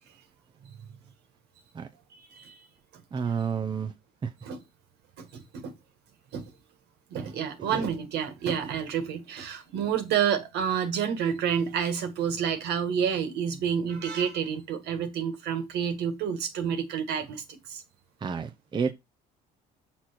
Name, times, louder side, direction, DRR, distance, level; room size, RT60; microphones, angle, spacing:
voice 1, 2.1-2.7 2.9-3.0 4.4-4.6 5.2-5.7 6.3-6.4 7.1-17.8, right 8 dB, 75° right, 1.7 m, -29 dB
voice 2, 3.1-3.9 4.2-4.3 7.6-7.8 18.2-18.9, right 6 dB, 25° right, 0.7 m, -30 dB
6.3 x 4.3 x 4.3 m
cardioid pair, 110°, 17 cm